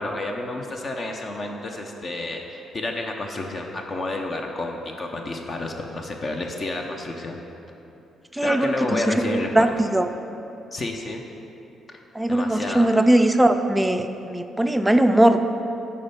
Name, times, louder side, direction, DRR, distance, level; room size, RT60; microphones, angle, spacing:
voice 1, 0.0-7.4 8.4-9.7 10.7-11.2 11.9-12.0 12.3-12.9, left 2 dB, 40° left, 2 dB, 0.7 m, -30 dB
voice 2, 8.3-10.1 12.1-15.4, right 1 dB, 10° right, 7 dB, 0.4 m, -20 dB
8.7 x 4.4 x 5.6 m, 2.8 s
cardioid pair, 90°, 0 cm